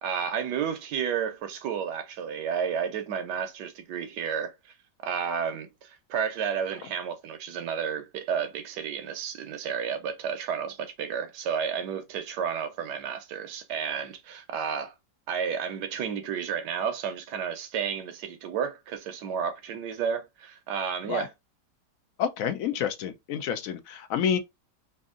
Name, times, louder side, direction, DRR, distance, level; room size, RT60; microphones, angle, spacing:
voice 1, 0.0-4.7 5.0-14.9 15.3-21.3, right 7 dB, 85° right, 1.3 m, -31 dB
voice 2, 22.2-24.4, left 8 dB, 70° left, 0.8 m, -29 dB
3.5 x 2.7 x 3.6 m
omnidirectional pair, 1.8 m